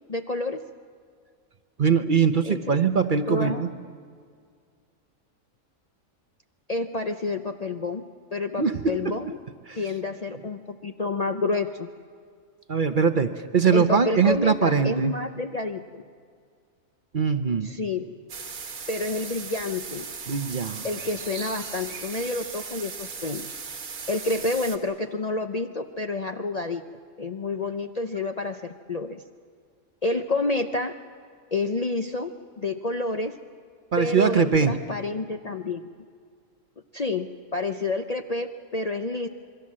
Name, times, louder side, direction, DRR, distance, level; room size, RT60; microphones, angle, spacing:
voice 1, 0.1-0.6 2.5-2.8 3.3-3.7 6.7-9.4 9.7-11.9 13.7-16.0 17.6-18.1 18.9-20.1 20.8-23.5 24.1-26.8 27.2-29.2 30.0-30.9 31.5-32.3 32.6-33.4 34.0-35.9 36.9-39.3, left 3 dB, 40° left, 6 dB, 0.6 m, -29 dB
voice 2, 1.8-3.7 8.6-9.2 9.7-9.8 12.7-15.1 17.1-17.7 20.3-20.8 33.9-34.7, right 6 dB, 45° right, 9 dB, 0.8 m, -22 dB
sound 1, 18.3-24.8, right 5 dB, 85° right, 2.0 m, -37 dB
27.0 x 22.5 x 7.5 m, 2.1 s
omnidirectional pair, 1.4 m